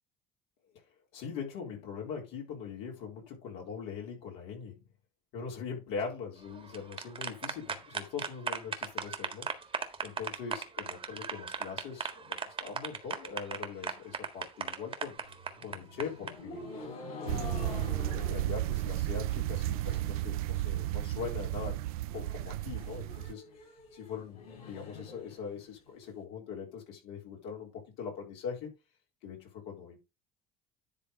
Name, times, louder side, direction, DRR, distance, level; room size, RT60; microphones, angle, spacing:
voice 1, 1.1-4.8 5.3-9.5 10.0-15.2 15.6-16.7 17.2-21.8 22.1-23.4 23.9-28.7 29.2-30.0, left 6 dB, 70° left, 3.8 m, -41 dB
sound 1, 6.5-16.3, right 5 dB, 30° right, 1.8 m, -36 dB
sound 2, 15.2-20.2 20.5-21.0 21.3-21.4 21.7-21.8 22.1-26.1, left 4 dB, 85° left, 5.5 m, -47 dB
sound 3, 17.3-23.3, right 16 dB, 85° right, 0.4 m, -33 dB
10.5 x 3.6 x 5.3 m
hypercardioid pair, 75°, 18 cm